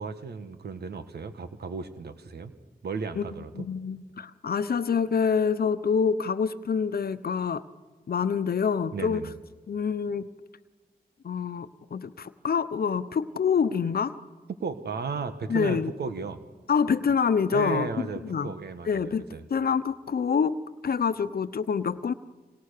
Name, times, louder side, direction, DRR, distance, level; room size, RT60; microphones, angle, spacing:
voice 1, 0.0-2.5 2.8-3.7 8.9-9.3 14.6-16.4 17.5-19.0 19.3-19.4, right 5 dB, 85° right, 9 dB, 1.5 m, -35 dB
voice 2, 3.6-7.6 8.1-9.2 9.7-10.3 11.2-14.2 15.5-15.9 16.7-17.9 18.2-18.5 18.9-19.2 19.5-22.1, left 6 dB, 70° left, 12 dB, 0.9 m, -26 dB
29.5 x 26.5 x 6.7 m, 1.3 s
cardioid pair, 55°, 16 cm